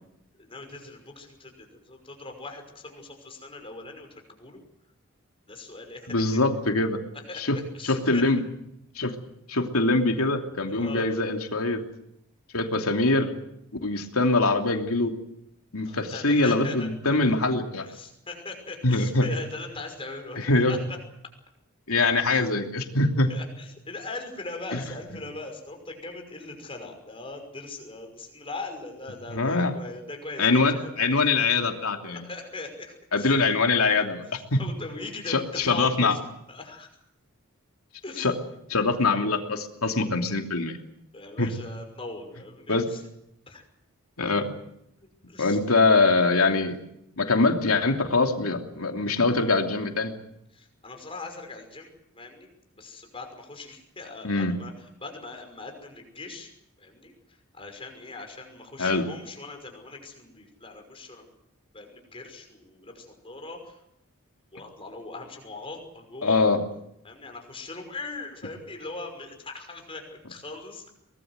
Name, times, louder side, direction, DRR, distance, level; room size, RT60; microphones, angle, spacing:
voice 1, 0.4-4.6 5.5-6.2 7.3-8.2 10.7-11.1 15.9-17.3 17.8-20.4 20.7-21.0 23.3-31.2 31.9-33.3 33.9-34.0 34.6-36.2 36.5-36.9 38.0-38.3 41.1-43.0 43.5-43.7 45.0-45.6 48.0-48.1 50.5-56.5 56.8-61.3 61.7-63.8 64.5-66.5 67.0-70.9, left 3 dB, 25° left, 3 dB, 5.8 m, -40 dB
voice 2, 6.1-7.0 7.3-7.6 7.8-8.4 8.9-9.1 9.5-11.8 12.5-13.3 13.8-15.2 15.7-17.8 18.8-19.3 20.4-20.8 21.9-23.3 24.7-24.8 29.3-29.7 30.4-32.2 33.1-34.2 34.5-34.6 35.3-36.2 38.2-38.3 38.7-40.8 41.4-41.5 42.7-42.9 44.2-44.5 45.4-46.8 47.2-50.1 54.2-54.5 58.8-59.1 66.2-66.6, left 3 dB, 90° left, 4 dB, 3.0 m, -23 dB
23.5 x 20.0 x 8.1 m, 0.78 s
head